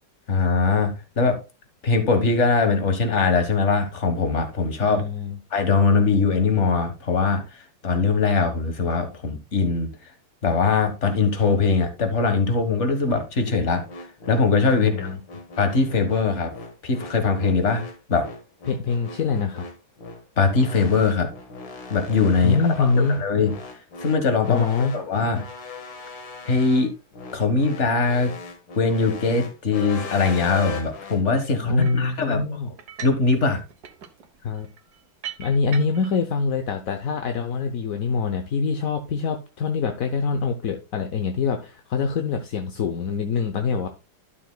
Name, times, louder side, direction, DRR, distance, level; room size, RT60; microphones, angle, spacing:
voice 1, 0.3-1.4 1.8-5.0 5.5-10.1 10.4-13.8 14.3-15.1 15.6-16.5 16.8-17.8 18.1-18.3 20.4-21.3 21.9-22.6 22.9-23.5 24.0-25.5 26.5-26.9 27.3-28.3 28.8-32.7 33.0-33.6, left 4 dB, 40° left, 1.6 m, -21 dB
voice 2, 4.8-5.4 14.7-15.2 18.7-19.7 22.4-23.2 24.4-24.9 31.7-32.7 34.4-34.7 35.4-43.9, left 5 dB, 60° left, 1.0 m, -24 dB
sound 1, 13.9-31.2, left 4 dB, 85° left, 2.2 m, -38 dB
sound 2, 31.8-32.1 32.8-33.3 33.6-36.2, right 8 dB, 60° right, 1.5 m, -40 dB
12.0 x 7.0 x 2.2 m
omnidirectional pair, 2.1 m